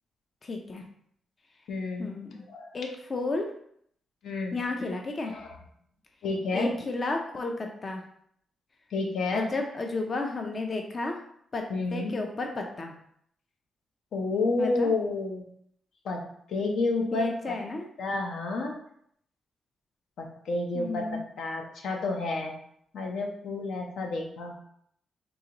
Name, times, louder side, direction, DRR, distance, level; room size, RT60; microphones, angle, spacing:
voice 1, 0.4-0.8 2.0-2.4 2.7-3.5 4.5-5.3 6.5-8.0 9.3-11.2 11.5-12.9 14.6-14.9 17.1-17.9 20.7-21.2, left 3 dB, 35° left, 3 dB, 0.4 m, -33 dB
voice 2, 1.7-2.1 2.5-2.7 4.2-4.5 5.3-5.5 6.2-6.7 8.9-9.5 11.7-12.1 14.1-15.4 16.0-16.2 16.5-17.6 18.0-18.7 20.2-22.5 22.9-24.6, left 3 dB, 80° left, 2 dB, 0.6 m, -30 dB
3.8 x 2.9 x 2.9 m, 0.68 s
cardioid pair, 120°, 0 cm